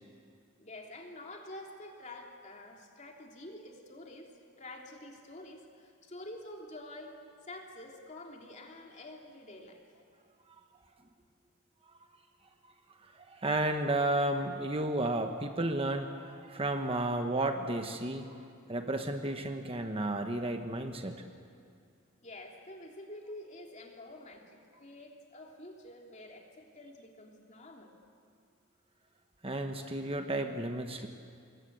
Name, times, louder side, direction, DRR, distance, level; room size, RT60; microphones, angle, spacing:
voice 1, 0.6-4.3 4.6-7.2 7.4-9.8 22.2-27.9, left 1 dB, 35° left, 1 dB, 3.1 m, -48 dB
voice 2, 13.1-18.3 18.7-21.1 29.4-31.1, right 1 dB, 25° right, 5 dB, 1.1 m, -32 dB
26.5 x 21.5 x 8.1 m, 2.3 s
head